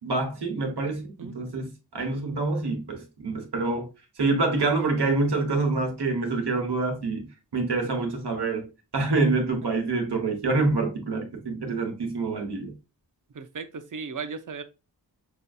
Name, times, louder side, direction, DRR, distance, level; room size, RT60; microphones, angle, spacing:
voice 1, 0.0-3.9 4.2-7.3 7.5-8.7 8.9-12.7, right 3 dB, 75° right, 1.1 m, -26 dB
voice 2, 13.3-14.6, right 5 dB, 50° right, 0.6 m, -36 dB
5.4 x 2.6 x 2.3 m
wide cardioid pair, 50°, 40 cm